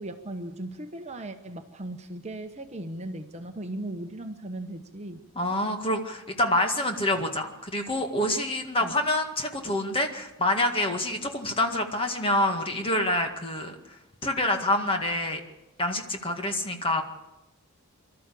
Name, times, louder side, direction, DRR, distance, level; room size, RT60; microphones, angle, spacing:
voice 1, 0.0-5.2 8.8-8.9, right 1 dB, 30° right, 6 dB, 1.1 m, -37 dB
voice 2, 5.4-13.7 14.2-15.4 15.8-17.0, left 1 dB, 25° left, 4 dB, 1.9 m, -27 dB
25.5 x 13.0 x 8.5 m, 0.96 s
head